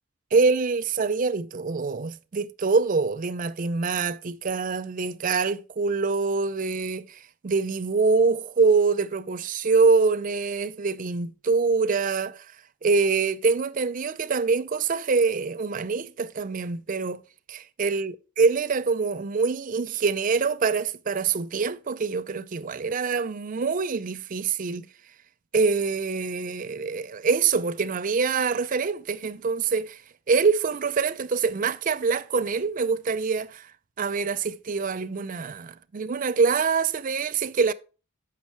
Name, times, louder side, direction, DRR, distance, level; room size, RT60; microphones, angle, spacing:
voice 1, 0.3-12.4 12.8-17.2 17.5-24.9 25.5-30.0 30.3-33.7 34.0-37.7, right 4 dB, 40° right, 0.4 m, -25 dB
7.3 x 5.9 x 4.4 m
head